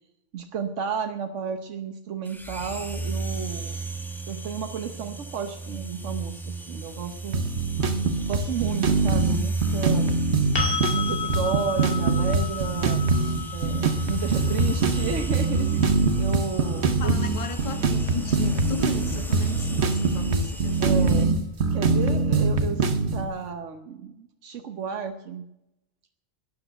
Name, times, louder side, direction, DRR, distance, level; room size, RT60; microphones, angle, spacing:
voice 1, 0.3-3.8 4.3-7.4 8.3-10.2 10.9-13.0 13.5-17.1 20.8-21.3 21.7-25.4, right 6 dB, 85° right, 6 dB, 1.3 m, -32 dB
sound 1, 2.3-21.2, right 2 dB, ahead, 1.7 m, -34 dB
sound 2, 7.3-23.2, right 3 dB, 65° right, 1.3 m, -23 dB
sound 3, 10.5-18.4 21.2-21.3, left 6 dB, 50° left, 2.6 m, -35 dB
voice 2, 17.0-20.8, left 4 dB, 30° left, 8 dB, 1.2 m, -35 dB
13.0 x 10.0 x 7.9 m, 0.88 s
omnidirectional pair, 1.2 m